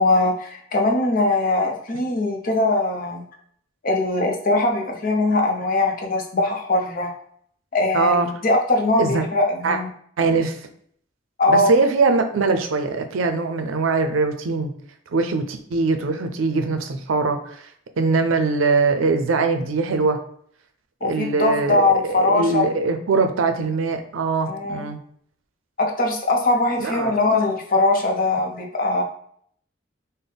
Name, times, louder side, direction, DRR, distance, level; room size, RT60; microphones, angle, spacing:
voice 1, 0.0-3.2 3.8-7.1 7.7-8.2 8.4-9.9 11.4-11.7 21.0-22.7 24.5-24.9 25.8-29.0, left 2 dB, 45° left, 1 dB, 0.7 m, -21 dB
voice 2, 7.9-8.3 9.0-9.2 9.6-9.8 10.2-10.6 11.5-14.7 15.1-17.6 18.0-20.2 21.0-21.8 22.1-25.0 26.8-27.1, right 4 dB, 90° right, 7 dB, 0.5 m, -22 dB
3.9 x 2.1 x 3.4 m, 0.64 s
head